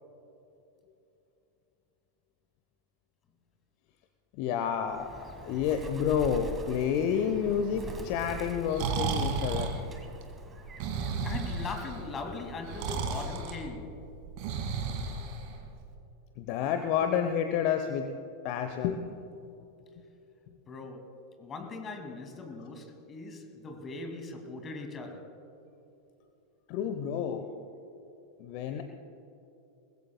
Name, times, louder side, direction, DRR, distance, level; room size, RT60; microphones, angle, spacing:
voice 1, 4.4-9.7 16.4-18.1 18.4-19.0 26.7-27.5 28.4-28.8, left 8 dB, 45° left, 0.9 m, -29 dB
Bird, 4.8-13.1, right 4 dB, 15° right, 1.8 m, -45 dB
Breathing, 8.5-15.9, right 4 dB, 45° right, 2.1 m, -34 dB
voice 2, 11.2-14.1 20.7-25.4, left 3 dB, 25° left, 2.2 m, -40 dB
24.0 x 20.5 x 2.2 m
figure-of-eight pair, 90°, 0 cm